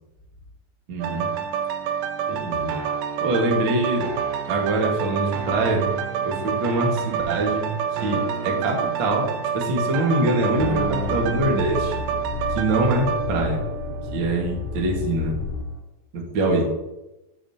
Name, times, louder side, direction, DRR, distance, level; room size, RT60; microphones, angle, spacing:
voice 1, 0.9-1.4 2.3-2.7 3.2-4.1 4.4-5.9 6.2-12.0 12.5-13.6 14.1-15.4 16.1-16.7, right 1 dB, 65° right, -1 dB, 1.2 m, -24 dB
sound 1, 1.0-14.7 15.2-15.3, right 8 dB, 85° right, 2.3 m, -28 dB
sound 2, 10.6-15.6, left 4 dB, 90° left, 2.0 m, -31 dB
14.0 x 5.3 x 2.8 m, 0.98 s
omnidirectional pair, 5.0 m